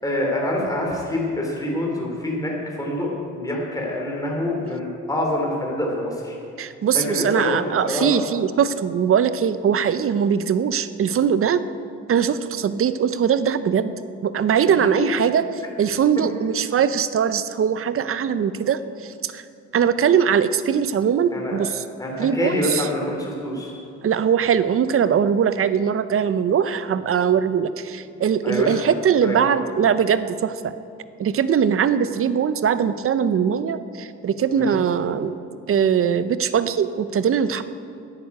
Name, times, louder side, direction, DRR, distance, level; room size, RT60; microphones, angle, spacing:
voice 1, 0.0-6.4 6.9-8.0 14.7-15.0 21.3-21.6 22.0-23.7 28.4-28.9 29.2-29.3 34.5-34.8, left 1 dB, 10° left, -2 dB, 3.3 m, -26 dB
voice 2, 6.6-11.6 12.1-13.9 14.2-15.4 15.8-19.4 19.7-21.8 22.2-22.9 24.0-30.7 31.2-35.3 35.7-37.6, right 7 dB, 45° right, 13 dB, 0.7 m, -21 dB
10.0 x 9.9 x 8.3 m, 2.6 s
cardioid pair, 90°, 30 cm